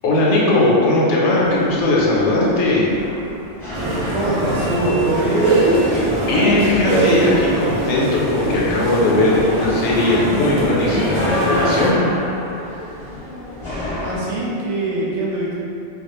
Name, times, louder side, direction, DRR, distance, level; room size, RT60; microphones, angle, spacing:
voice 1, 0.0-2.9 5.9-12.1, left 2 dB, 80° left, -5 dB, 0.9 m, -18 dB
sound 1, 1.4-14.2, equal, 30° left, 0.7 m, -31 dB
sound 2, 3.7-11.9, right 1 dB, 50° right, 0.5 m, -21 dB
voice 2, 4.1-5.6 14.0-15.5, right 1 dB, 80° right, -6 dB, 1.0 m, -22 dB
2.3 x 2.2 x 3.0 m, 2.7 s
omnidirectional pair, 1.2 m